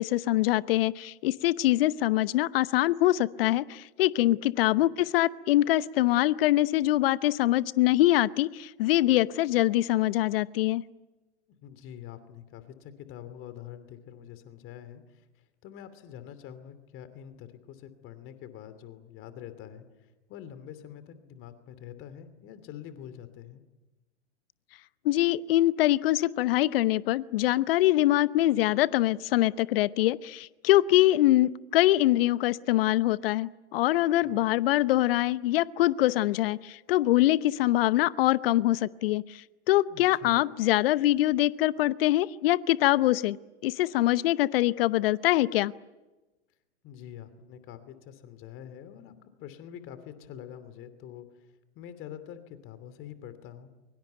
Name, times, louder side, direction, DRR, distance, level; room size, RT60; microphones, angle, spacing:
voice 1, 0.0-10.8 25.0-39.2 39.7-43.4 43.6-45.7, left 15 dB, 55° left, 17 dB, 0.9 m, -24 dB
voice 2, 11.6-15.2 15.6-23.6 34.2-34.5 39.9-40.4 46.8-49.1 49.4-51.5 51.7-53.7, left 10 dB, 35° left, 11 dB, 2.9 m, -45 dB
24.0 x 23.0 x 9.3 m, 1.1 s
hypercardioid pair, 105°, 35 cm